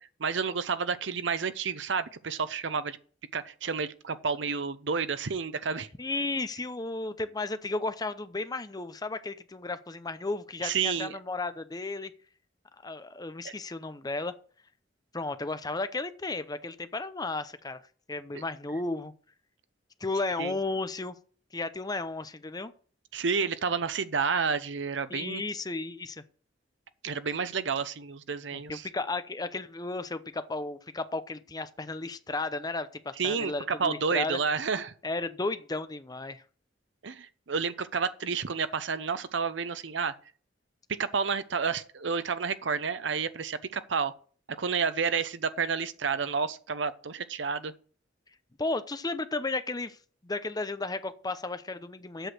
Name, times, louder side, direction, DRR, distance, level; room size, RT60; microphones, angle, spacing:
voice 1, 0.2-3.0 3.3-5.9 10.6-11.2 13.4-13.5 18.3-18.4 20.4-20.6 23.1-25.4 27.0-28.9 33.2-34.9 37.0-40.1 41.0-44.1 44.6-47.7, right 5 dB, 70° right, 0.7 m, -30 dB
voice 2, 6.0-12.1 12.8-14.4 15.1-17.8 18.1-19.1 20.0-21.1 21.5-22.7 25.1-26.2 28.5-34.4 35.0-36.4 48.6-50.0 50.2-52.3, left 3 dB, 20° left, 0.7 m, -34 dB
8.0 x 6.3 x 7.7 m
head